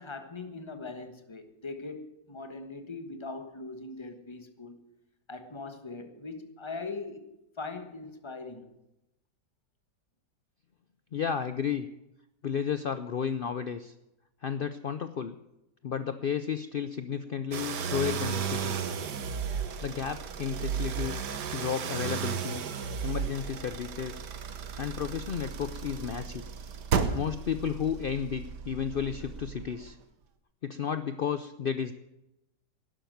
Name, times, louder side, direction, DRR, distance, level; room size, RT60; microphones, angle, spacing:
voice 1, 0.0-4.8 5.3-7.3 7.6-8.7, left 3 dB, 20° left, 1.3 m, -41 dB
voice 2, 11.1-11.9 12.4-13.9 14.4-15.4 15.8-18.9 19.8-22.6 23.0-24.2 24.8-26.4 27.1-30.0 30.6-31.9, left 7 dB, 70° left, 0.5 m, -32 dB
sound 1, 17.5-29.9, right 6 dB, 75° right, 1.7 m, -34 dB
11.5 x 11.5 x 9.2 m
omnidirectional pair, 1.8 m